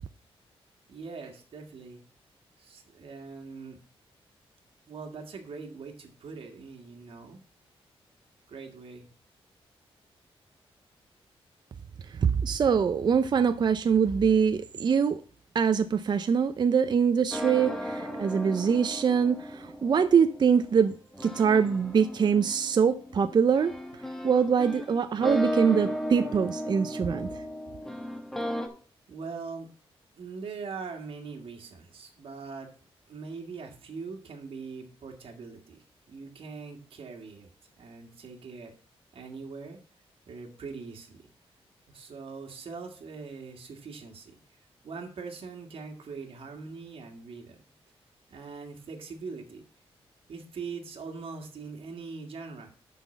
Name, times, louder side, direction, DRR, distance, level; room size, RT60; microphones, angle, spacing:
voice 1, 0.9-2.0 2.6-3.8 4.9-7.4 8.5-9.1 29.1-29.8 30.2-32.7 33.1-37.5 37.8-38.7 39.1-39.8 40.3-41.2 41.9-44.3 44.8-47.6 48.3-49.7 50.3-52.7, right 4 dB, 65° right, 1.9 m, -42 dB
voice 2, 12.1-15.2 15.5-23.7 24.2-27.3, right 6 dB, 45° right, 0.5 m, -24 dB
sound 1, 17.3-28.7, equal, 5° left, 1.2 m, -36 dB
6.0 x 5.8 x 7.1 m
cardioid pair, 110°, 10 cm